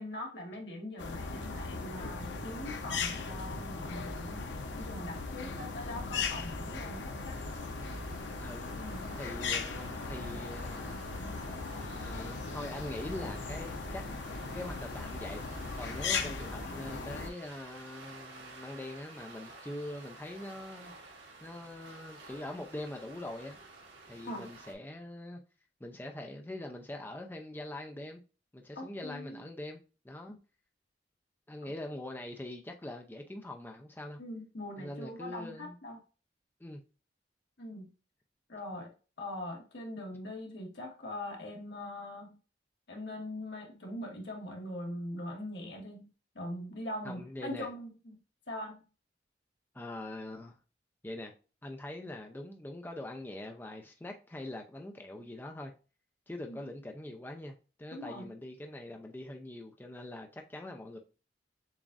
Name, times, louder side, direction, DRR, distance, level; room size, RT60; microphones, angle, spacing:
voice 1, 0.0-7.4 8.7-9.0 24.3-24.4 28.7-29.4 34.2-36.0 37.6-37.9 38.5-38.9 39.2-42.4 42.9-46.1 46.3-48.1 48.5-48.8 56.5-56.6 57.9-58.3, left 1 dB, 75° left, 1.5 m, -42 dB
sound 1, 1.0-17.3, left 4 dB, 90° left, 0.7 m, -38 dB
sound 2, 7.1-24.7, right 3 dB, 80° right, 1.6 m, -52 dB
voice 2, 9.2-11.2 12.0-14.1 14.4-20.9 21.4-23.6 24.1-25.4 25.8-28.2 28.5-29.8 30.0-30.4 31.5-34.2 34.8-35.8 36.6-36.8 47.0-47.7 49.7-50.6 51.0-51.3 51.6-55.7 56.3-61.0, left 1 dB, 10° left, 0.4 m, -43 dB
7.0 x 2.5 x 2.4 m
head